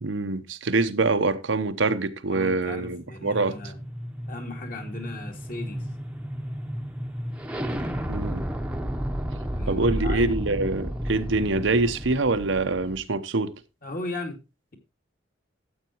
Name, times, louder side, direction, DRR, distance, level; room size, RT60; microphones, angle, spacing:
voice 1, 0.0-3.6 8.1-8.5 9.7-13.5, right 3 dB, 80° right, 0.9 m, -25 dB
voice 2, 2.3-3.8 4.3-5.8 9.4-10.3 13.8-14.4, left 2 dB, 45° left, 2.4 m, -37 dB
sound 1, 3.0-13.0, equal, 5° right, 0.9 m, -32 dB
13.0 x 8.1 x 2.9 m
head